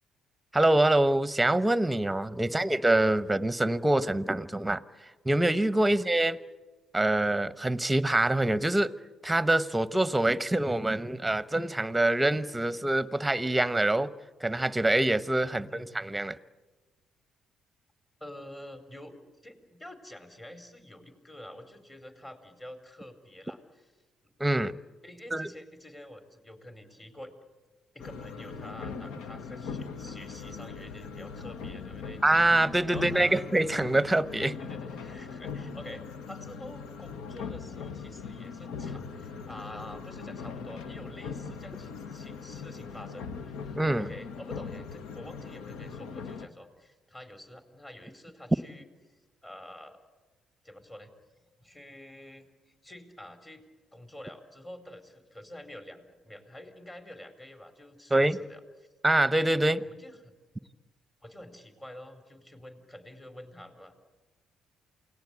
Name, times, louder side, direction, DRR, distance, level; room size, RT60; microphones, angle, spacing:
voice 1, 0.5-4.8 5.2-6.4 6.9-8.9 9.2-14.1 14.4-16.4 24.4-24.8 25.3-25.5 32.2-34.5 43.8-44.1 58.1-58.4 59.0-59.8, right 1 dB, 10° right, 16 dB, 1.0 m, -25 dB
voice 2, 15.5-15.9 18.2-19.1 19.4-23.9 25.0-27.3 27.9-32.2 32.9-33.4 34.6-48.9 49.4-50.0 50.6-51.1 51.6-53.6 53.9-58.9 59.8-60.3 61.2-64.0, left 1 dB, 20° left, 7 dB, 4.5 m, -47 dB
sound 1, 28.0-46.5, left 5 dB, 75° left, 1.2 m, -40 dB
28.5 x 19.0 x 8.4 m, 1.2 s
hypercardioid pair, 50°, 0 cm